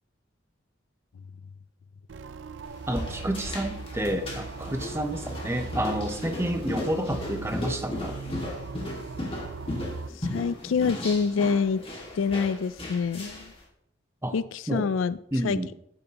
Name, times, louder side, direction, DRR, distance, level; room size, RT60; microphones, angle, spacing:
sound 1, 2.1-10.1, right 4 dB, 75° right, 0.5 m, -39 dB
sound 2, 2.6-13.6, left 1 dB, 30° left, 2.1 m, -36 dB
voice 1, 2.9-8.2 14.2-14.3 14.7-14.9 15.3-15.7, right 1 dB, 15° right, 6 dB, 0.8 m, -30 dB
voice 2, 10.3-11.8 12.1-13.5 14.3-15.2 15.4-15.6, left 5 dB, 90° left, 16 dB, 0.4 m, -26 dB
11.0 x 8.7 x 2.9 m, 0.74 s
head